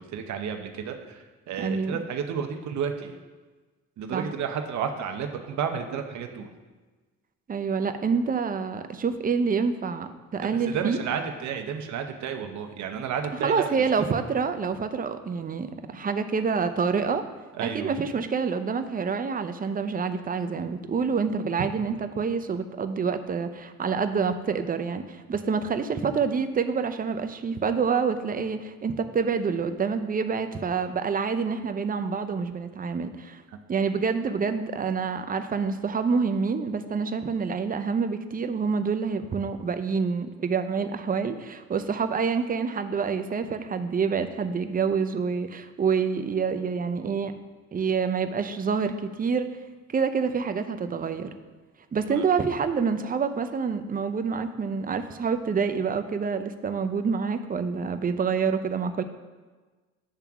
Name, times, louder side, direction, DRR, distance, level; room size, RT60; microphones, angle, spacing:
voice 1, 0.0-3.2 4.0-6.5 10.4-13.7 17.6-17.9 52.1-52.2, right 7 dB, 70° right, 5 dB, 0.8 m, -32 dB
voice 2, 1.6-2.0 4.1-4.3 7.5-11.0 13.4-17.2 17.6-33.4 33.7-47.3 47.7-49.5 49.9-51.3 51.9-59.0, right 5 dB, 30° right, 9 dB, 0.5 m, -27 dB
8.9 x 3.5 x 5.9 m, 1.3 s
cardioid pair, 90°, 30 cm